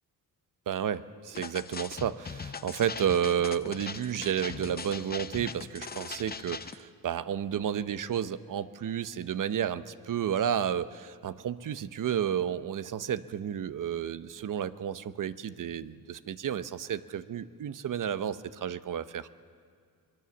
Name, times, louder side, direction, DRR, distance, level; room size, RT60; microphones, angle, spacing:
voice 1, 0.7-19.3, right 9 dB, 60° right, 13 dB, 0.9 m, -31 dB
sound 1, 1.3-6.8, left 5 dB, 25° left, 0.7 m, -40 dB
25.0 x 21.5 x 7.2 m, 2.2 s
cardioid pair, 115°, 36 cm